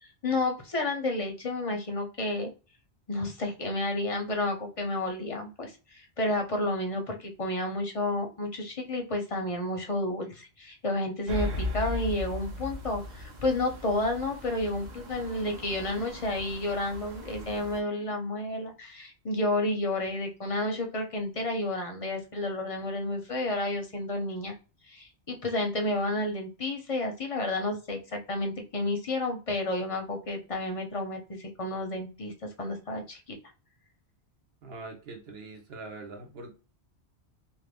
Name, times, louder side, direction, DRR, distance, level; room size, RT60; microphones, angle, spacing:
voice 1, 0.0-2.5 3.1-24.5 24.9-32.3 32.6-33.4, left 2 dB, 40° left, 0.6 m, -31 dB
sound 1, 11.3-17.8, left 1 dB, 45° right, 0.8 m, -38 dB
voice 2, 34.6-36.5, right 3 dB, 65° right, 1.0 m, -43 dB
2.6 x 2.5 x 3.4 m
omnidirectional pair, 1.1 m